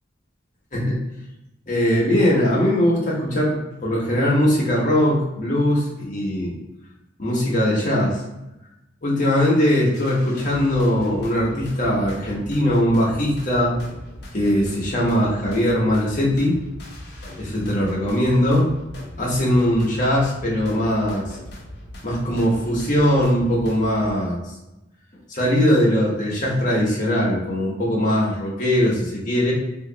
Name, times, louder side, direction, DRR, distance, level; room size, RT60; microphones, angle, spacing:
voice 1, 1.7-6.5 7.2-8.2 9.0-13.8 14.3-16.6 17.4-18.7 19.2-21.4 22.0-24.4 25.3-29.5, equal, 40° left, -4 dB, 1.1 m, -20 dB
sound 1, 9.9-24.1, left 1 dB, 60° left, 0.8 m, -39 dB
3.8 x 2.9 x 2.8 m, 0.94 s
head